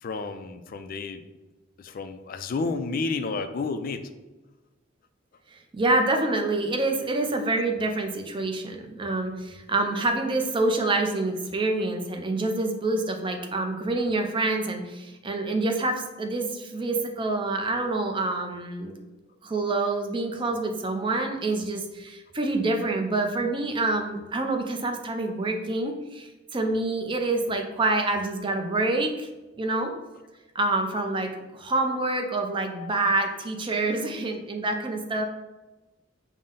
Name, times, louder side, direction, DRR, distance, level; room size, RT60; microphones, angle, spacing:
voice 1, 0.0-1.2 1.8-4.1 18.4-18.5 32.7-32.9, left 4 dB, 50° left, 9 dB, 0.3 m, -31 dB
voice 2, 5.7-19.0 19.4-29.3 29.6-29.9 30.5-35.3, right 2 dB, 25° right, 4 dB, 0.5 m, -27 dB
5.5 x 2.1 x 3.8 m, 1.1 s
head